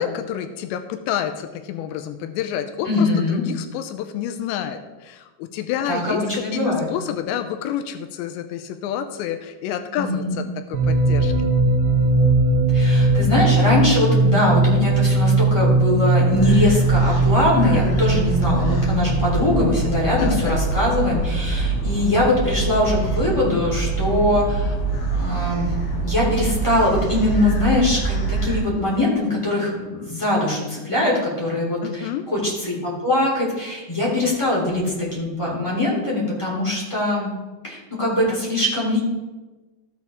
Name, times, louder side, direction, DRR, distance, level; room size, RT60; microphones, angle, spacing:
voice 1, 0.0-6.6 6.9-10.4 10.7-11.5 20.2-20.6 31.8-32.3 38.1-38.4, left 9 dB, 85° left, 8 dB, 2.9 m, -29 dB
voice 2, 2.8-3.4 5.8-6.8 9.9-10.4 12.7-24.7 25.2-25.7 26.0-37.3 37.6-39.0, left 1 dB, 10° left, -6 dB, 2.7 m, -22 dB
sound 1, 10.7-20.4, right 2 dB, 70° right, 3.4 m, -19 dB
sound 2, 16.3-28.6, right 3 dB, 60° left, 3.7 m, -25 dB
14.0 x 8.3 x 3.6 m, 1.2 s
omnidirectional pair, 5.0 m